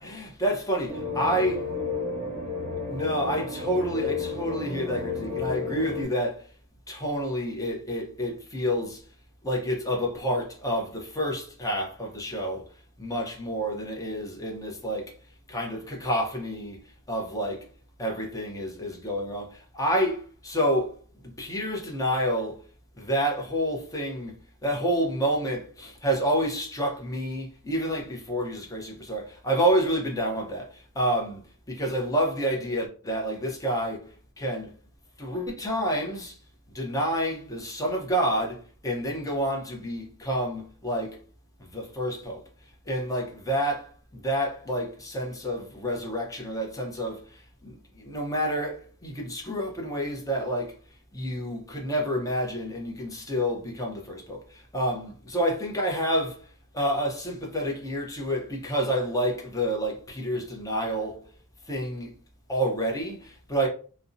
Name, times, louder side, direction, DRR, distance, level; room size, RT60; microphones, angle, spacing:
voice 1, 0.0-1.6 2.9-6.5 6.9-9.0 9.4-12.7 13.0-15.1 15.5-17.7 18.0-22.6 23.0-31.4 31.7-34.7 35.2-36.4 36.7-41.2 41.6-42.4 42.9-50.7 51.1-61.3 61.7-62.1 62.5-63.7, equal, 15° left, 0.6 m, -29 dB
sound 1, 0.9-6.0, left 4 dB, 30° right, 1.2 m, -32 dB
2.5 x 2.0 x 2.5 m
head